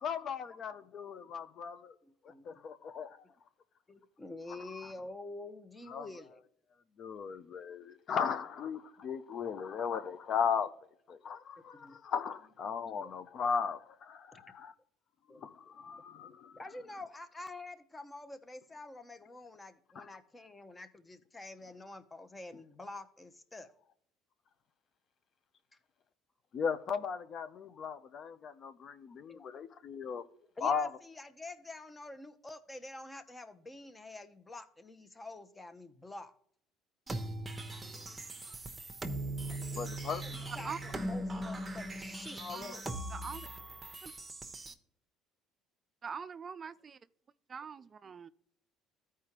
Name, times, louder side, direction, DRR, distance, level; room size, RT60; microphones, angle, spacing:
voice 1, 0.0-1.9 2.5-3.2 5.9-6.1 7.0-10.7 11.1-14.7 15.4-16.5 20.0-20.1 26.5-30.2 30.6-30.9 39.7-40.5 42.4-42.8, left 6 dB, 50° left, 0.6 m, -37 dB
voice 2, 2.0-2.6 3.9-6.4 11.7-12.0 12.9-13.1 14.3-14.4 15.3-15.5 16.2-23.7 29.3-29.6 30.4-36.3 38.4-38.6 39.7-42.5, left 2 dB, 20° left, 0.9 m, -48 dB
sound 1, 37.1-44.7, right 1 dB, 20° right, 1.0 m, -40 dB
voice 3, 43.1-43.5 44.0-44.1 46.0-47.0 47.5-48.3, right 6 dB, 35° right, 0.3 m, -43 dB
14.0 x 4.8 x 2.9 m
hypercardioid pair, 70°, 0 cm